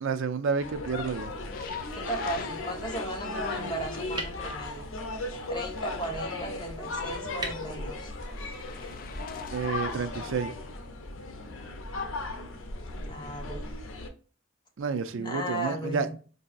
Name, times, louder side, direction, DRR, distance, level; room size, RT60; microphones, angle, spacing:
voice 1, 0.0-1.3 9.5-10.5 14.8-16.2, right 5 dB, 70° right, 11 dB, 0.4 m, -30 dB
sound 1, 0.6-14.1, left 2 dB, 85° left, 0.7 m, -36 dB
sound 2, 1.2-9.2, right 1 dB, 20° right, 0.8 m, -45 dB
sound 3, 1.4-4.6 5.5-7.3 8.3-10.9 11.6-12.0 12.8-12.9, left 6 dB, 45° left, 0.3 m, -49 dB
voice 2, 1.9-4.9 5.5-8.1 13.0-13.6 15.2-16.1, right 1 dB, 20° left, 1 dB, 0.8 m, -36 dB
4.5 x 2.7 x 2.4 m, 0.39 s
head